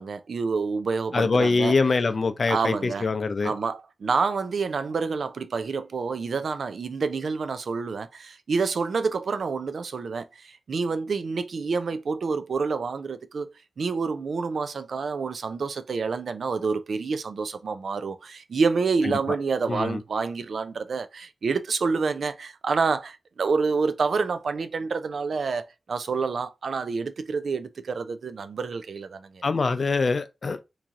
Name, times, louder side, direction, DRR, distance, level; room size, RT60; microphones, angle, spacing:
voice 1, 0.0-1.7 2.5-3.1 3.4-29.4, right 4 dB, 75° right, 0.4 m, -28 dB
voice 2, 1.1-3.5 19.0-19.1 19.7-20.0 29.4-30.6, left 4 dB, 60° left, 0.5 m, -24 dB
3.1 x 2.6 x 3.6 m
cardioid pair, 50°, 0 cm